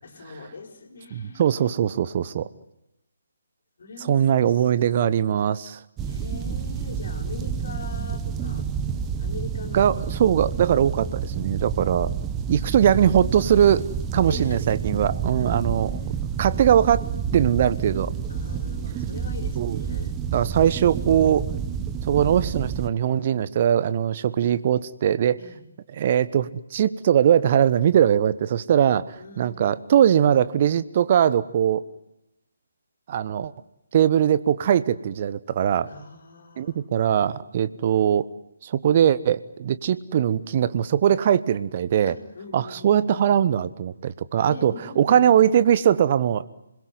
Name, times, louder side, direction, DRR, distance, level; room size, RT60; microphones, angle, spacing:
voice 1, 0.0-1.7 3.8-5.1 6.0-8.7 9.2-9.9 12.5-13.1 14.2-14.7 15.4-16.2 17.9-18.0 18.3-20.2 25.4-25.6 29.2-29.7 35.9-36.9 42.1-43.2 44.4-45.5, left 3 dB, 50° left, 6 dB, 5.0 m, -41 dB
voice 2, 1.1-2.5 4.1-5.8 9.7-12.1 12.5-13.8 14.1-15.9 16.4-17.0 17.3-18.1 19.6-19.8 20.3-21.5 22.1-25.4 26.0-31.8 33.1-33.5 33.9-35.9 36.6-38.3 38.6-42.2 42.5-46.5, right 9 dB, 35° right, 15 dB, 1.1 m, -21 dB
sound 1, 6.0-22.9, right 7 dB, 15° right, 1.2 m, -29 dB
27.5 x 21.5 x 9.5 m, 0.89 s
figure-of-eight pair, 145°, 0 cm